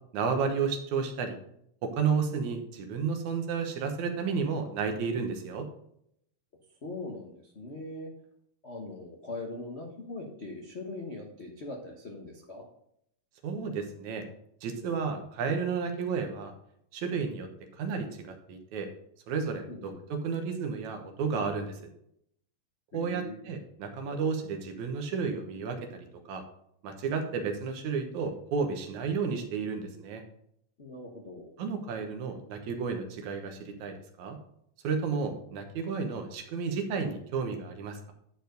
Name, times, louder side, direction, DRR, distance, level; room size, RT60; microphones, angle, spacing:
voice 1, 0.1-1.4 1.8-5.7 13.4-14.3 14.6-16.5 16.9-17.5 17.8-18.1 18.5-18.9 19.3-21.8 22.9-26.4 26.8-30.2 31.6-34.4 34.8-38.1, right 5 dB, 80° right, 5 dB, 2.5 m, -32 dB
voice 2, 6.8-8.1 8.6-12.7 19.7-20.0 22.9-23.4 30.8-31.5, left 2 dB, 85° left, 0 dB, 0.5 m, -41 dB
10.0 x 4.6 x 5.2 m, 0.72 s
omnidirectional pair, 3.4 m